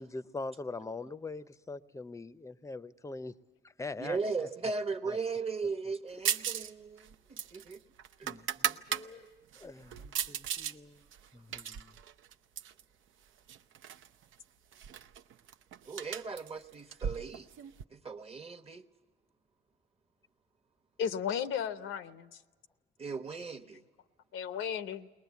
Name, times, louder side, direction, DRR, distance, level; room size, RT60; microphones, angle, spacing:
voice 1, 0.0-3.3 3.8-4.7 5.1-5.2 6.5-6.7 8.2-9.2 9.6-11.1 11.3-12.0, left 3 dB, 15° left, 0.6 m, -43 dB
voice 2, 4.0-7.8 8.2-8.3 9.2-9.4 15.9-17.5 17.9-18.8 23.0-23.8, right 4 dB, 30° right, 1.0 m, -37 dB
sound 1, 6.3-6.7 7.0-9.1 9.5-10.8 11.1-12.8 13.5-14.1 14.3-14.4 14.7-17.8, right 9 dB, 80° right, 0.6 m, -36 dB
voice 3, 21.0-22.4 24.3-25.1, left 8 dB, 85° left, 0.8 m, -34 dB
21.5 x 19.5 x 8.2 m
cardioid pair, 90°, 20 cm